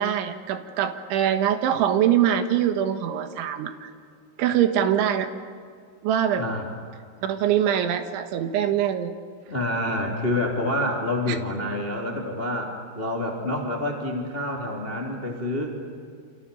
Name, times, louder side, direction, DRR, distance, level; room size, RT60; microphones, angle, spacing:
voice 1, 0.0-3.9 4.4-5.3 6.0-6.4 7.2-9.1 11.3-11.4, right 10 dB, 75° right, 7 dB, 3.7 m, -23 dB
voice 2, 9.5-15.7, left 1 dB, 15° left, -1 dB, 2.4 m, -27 dB
29.0 x 27.0 x 7.0 m, 2.2 s
omnidirectional pair, 5.7 m